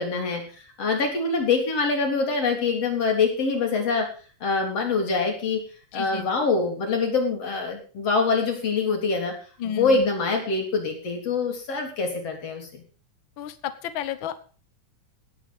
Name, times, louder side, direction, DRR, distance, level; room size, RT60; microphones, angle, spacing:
voice 1, 0.0-4.1 4.4-5.6 5.9-9.3 9.6-12.8, left 4 dB, 50° left, 2 dB, 4.5 m, -24 dB
voice 2, 5.9-6.3 9.6-10.0 13.4-14.4, left 9 dB, 70° left, 12 dB, 1.1 m, -32 dB
17.5 x 8.9 x 5.4 m, 0.39 s
omnidirectional pair, 3.6 m